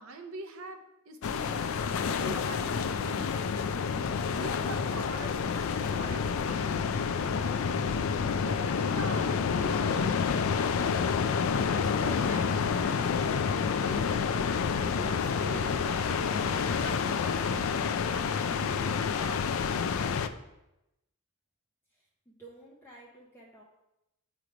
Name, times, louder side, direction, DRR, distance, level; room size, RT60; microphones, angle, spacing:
voice 1, 0.0-1.7 2.2-3.4 4.4-5.4 5.7-7.1 8.2-11.0 11.7-14.1 14.9-19.4, right 2 dB, 85° right, 5 dB, 0.8 m, -44 dB
sound 1, 1.2-20.3, left 6 dB, 70° left, 0.4 m, -29 dB
voice 2, 22.3-23.6, right 2 dB, 10° left, -5 dB, 0.7 m, -52 dB
8.4 x 3.1 x 5.0 m, 0.91 s
head